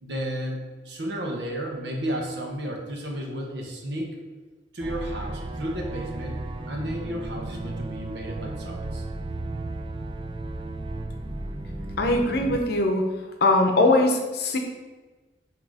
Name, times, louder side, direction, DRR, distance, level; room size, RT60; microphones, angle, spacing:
voice 1, 0.0-4.2 4.7-6.4 6.7-9.0, equal, 80° right, 1 dB, 1.1 m, -33 dB
sound 1, 4.8-12.6, right 2 dB, 30° right, 0.4 m, -34 dB
voice 2, 12.0-13.0 13.4-14.6, left 2 dB, 65° left, 3 dB, 0.8 m, -21 dB
7.7 x 2.9 x 4.8 m, 1.2 s
head